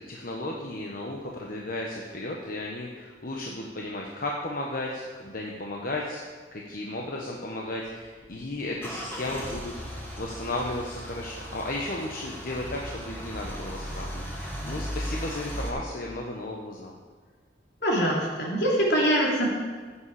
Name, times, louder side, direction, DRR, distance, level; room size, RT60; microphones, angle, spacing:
voice 1, 0.0-6.2 6.5-17.0, left 1 dB, 55° left, -1 dB, 1.2 m, -34 dB
Car / Engine starting / Idling, 7.9-15.7, equal, 15° left, 2.6 m, -37 dB
voice 2, 17.8-19.5, equal, 75° left, -3 dB, 3.4 m, -23 dB
15.5 x 8.5 x 4.9 m, 1.5 s
head